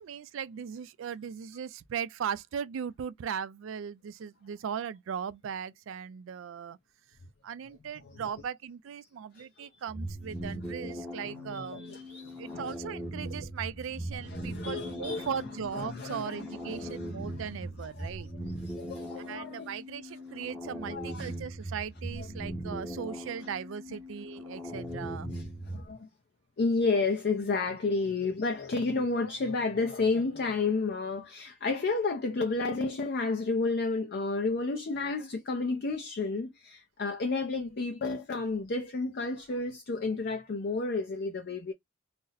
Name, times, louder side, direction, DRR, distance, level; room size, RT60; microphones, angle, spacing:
voice 1, 0.0-6.8 7.4-12.0 12.4-18.3 19.2-25.3, right 7 dB, 75° right, 0.3 m, -38 dB
voice 2, 9.3-9.7 11.2-12.6 14.2-15.3 15.7-17.4 17.8-19.7 20.9-21.3 22.2-22.3 24.7-26.1 26.6-41.7, left 3 dB, 50° left, 0.5 m, -32 dB
sound 1, 9.9-25.9, equal, 5° left, 0.7 m, -40 dB
2.5 x 2.0 x 3.9 m
head